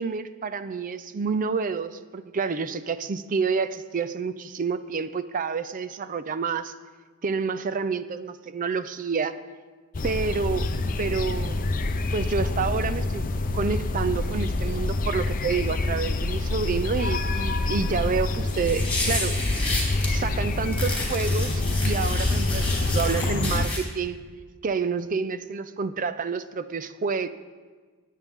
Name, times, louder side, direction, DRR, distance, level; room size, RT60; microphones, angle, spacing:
voice 1, 0.0-6.7 7.2-9.4 10.0-10.7 11.0-11.6 12.1-19.4 20.1-24.2 24.6-27.3, right 5 dB, 40° right, 12 dB, 0.4 m, -28 dB
sound 1, 9.9-23.7, left 2 dB, 40° left, 0.6 m, -26 dB
sound 2, 18.5-20.1 20.7-23.8, left 2 dB, 5° left, 3.2 m, -31 dB
19.0 x 8.3 x 3.6 m, 1.4 s
head